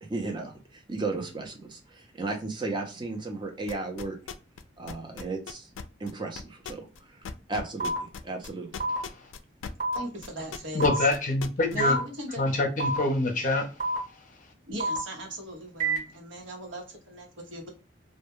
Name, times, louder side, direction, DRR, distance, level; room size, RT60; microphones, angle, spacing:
voice 1, 0.0-4.2 4.8-5.7 6.0-7.2 7.5-7.9 8.2-8.9, right 3 dB, 25° right, 0.5 m, -34 dB
sound 1, 3.7-4.6 4.9-10.0 10.2-11.8, left 6 dB, 90° left, 0.3 m, -38 dB
sound 2, 7.8-8.0 8.8-9.0 9.8-10.0 10.8-11.0 11.8-12.0 12.8-13.0 13.8-14.0 14.8-15.0 15.8-16.0, right 2 dB, 40° right, 0.9 m, -27 dB
voice 2, 9.9-11.0 11.7-12.4 14.7-17.7, right 1 dB, 85° right, 0.9 m, -38 dB
voice 3, 10.7-12.0 12.4-13.7, left 2 dB, 40° left, 0.6 m, -25 dB
2.2 x 2.1 x 2.9 m
head